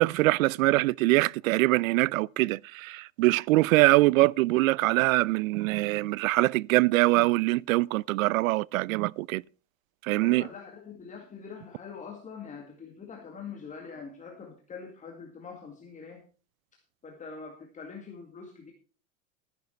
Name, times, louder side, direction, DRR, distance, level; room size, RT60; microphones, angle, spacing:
voice 1, 0.0-9.4 10.0-10.4, right 20 dB, 75° right, 0.5 m, -23 dB
voice 2, 10.2-16.2 17.0-18.7, left 5 dB, 20° left, 2.2 m, -44 dB
13.0 x 11.0 x 4.3 m
supercardioid pair, 145°, 41 cm